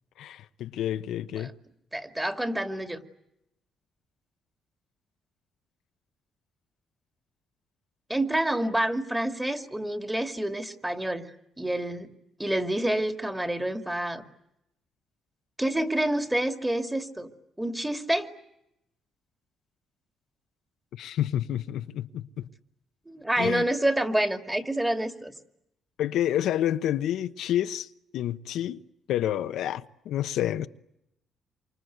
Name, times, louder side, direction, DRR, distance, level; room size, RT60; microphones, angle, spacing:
voice 1, 0.2-1.5 21.0-22.2 23.4-23.6 26.0-27.9 28.1-28.8 29.1-30.7, left 11 dB, 80° left, 1.0 m, -29 dB
voice 2, 1.9-3.0 8.1-11.3 11.6-12.1 12.4-14.2 15.6-17.3 17.6-18.3 23.1-25.3, right 1 dB, 10° right, 2.5 m, -28 dB
28.0 x 25.5 x 8.0 m
cardioid pair, 90°, 0 cm